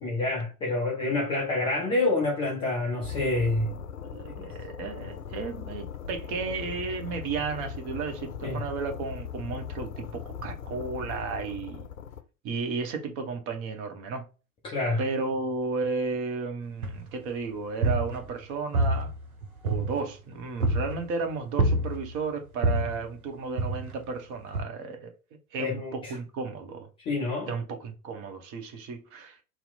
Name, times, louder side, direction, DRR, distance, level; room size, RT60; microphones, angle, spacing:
voice 1, 0.0-3.7 4.3-4.5 8.4-8.6 14.7-15.0 25.6-26.2 27.0-27.5, left 2 dB, 15° left, 0.3 m, -27 dB
sound 1, 3.0-12.2, left 7 dB, 70° left, 0.6 m, -39 dB
voice 2, 4.0-11.8 12.4-14.2 15.0-19.1 19.6-25.1 25.5-26.9 27.5-29.4, right 4 dB, 30° right, 0.8 m, -33 dB
sound 2, 16.8-17.3 17.6-18.4 18.7-20.2 20.6-21.0 21.6-22.2 22.6-23.0 23.6-24.1 24.5-24.6, right 2 dB, 80° right, 0.8 m, -27 dB
2.8 x 2.0 x 3.9 m
figure-of-eight pair, 85°, 43 cm